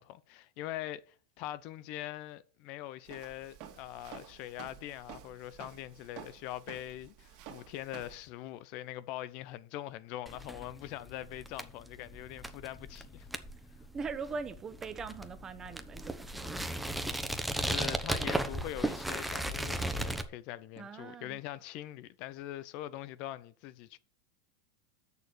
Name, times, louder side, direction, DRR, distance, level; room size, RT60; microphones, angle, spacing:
voice 1, 0.0-13.3 17.2-24.0, left 14 dB, 55° left, 0.6 m, -43 dB
Walk footsteps, 3.0-8.3, right 9 dB, 55° right, 2.1 m, -51 dB
sound 1, 10.3-20.2, right 1 dB, 5° right, 1.1 m, -36 dB
voice 2, 13.9-16.7 20.8-21.4, right 5 dB, 25° right, 1.2 m, -41 dB
6.8 x 6.5 x 6.3 m
hypercardioid pair, 105°, 2 cm